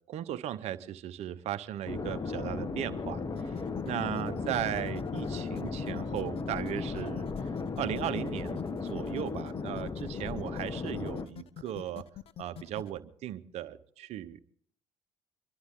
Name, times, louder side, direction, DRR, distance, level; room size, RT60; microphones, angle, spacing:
voice 1, 0.1-3.6 3.8-7.5 7.8-12.0 12.4-14.4, right 11 dB, 65° right, 12 dB, 0.9 m, -37 dB
sound 1, 1.9-11.3, left 4 dB, 35° left, 1.2 m, -36 dB
sound 2, 3.4-13.0, left 11 dB, 55° left, 0.7 m, -46 dB
25.5 x 11.5 x 3.8 m, 0.64 s
hypercardioid pair, 65°, 12 cm